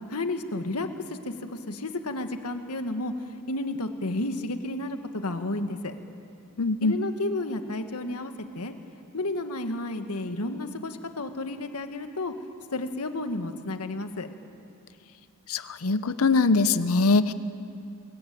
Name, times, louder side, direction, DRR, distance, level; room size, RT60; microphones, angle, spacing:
voice 1, 0.1-5.9 6.8-8.7 9.1-12.3 12.7-14.3, left 2 dB, 85° left, 7 dB, 1.6 m, -32 dB
voice 2, 6.6-6.9 15.5-17.3, left 3 dB, 70° left, 13 dB, 0.8 m, -22 dB
23.5 x 22.0 x 9.3 m, 2.8 s
head